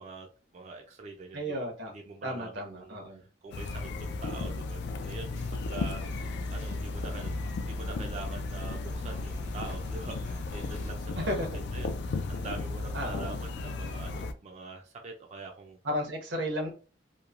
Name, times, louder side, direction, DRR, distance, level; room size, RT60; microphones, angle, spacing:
voice 1, 0.0-1.4 1.9-3.2 3.4-7.3 7.6-15.8, right 3 dB, 40° right, 2 dB, 0.4 m, -44 dB
voice 2, 1.3-1.9 2.2-3.2 11.2-11.5 12.9-13.4 15.8-16.7, equal, 90° right, 1 dB, 0.9 m, -33 dB
sound 1, 3.5-14.3, left 3 dB, 65° left, 0.3 m, -35 dB
sound 2, 5.3-10.9, equal, 40° left, 0.7 m, -47 dB
3.0 x 2.1 x 2.4 m, 0.35 s
head